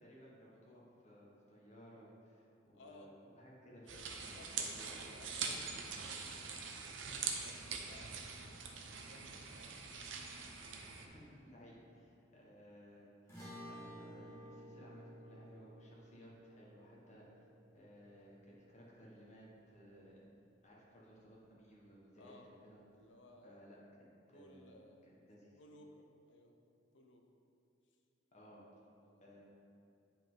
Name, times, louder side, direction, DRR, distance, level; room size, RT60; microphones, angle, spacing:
voice 1, 0.0-4.4 4.7-5.0 10.9-17.3 17.7-20.2 20.6-22.8 23.4-23.8 24.3-24.7 25.1-25.6 28.3-28.6 29.2-29.4, equal, 40° left, -5 dB, 1.6 m, -59 dB
voice 2, 2.7-3.1 3.9-6.6 7.1-8.5 8.8-9.8 10.6-11.2 22.2-22.5 22.9-23.8 24.3-25.1 25.5-26.5 26.9-27.3 28.7-29.3, left 1 dB, 75° left, 2 dB, 0.8 m, -61 dB
sound 1, 3.9-11.0, right 5 dB, 80° right, 0.8 m, -43 dB
sound 2, 13.3-19.8, equal, 15° left, 1.8 m, -54 dB
8.9 x 5.5 x 3.9 m, 2.5 s
head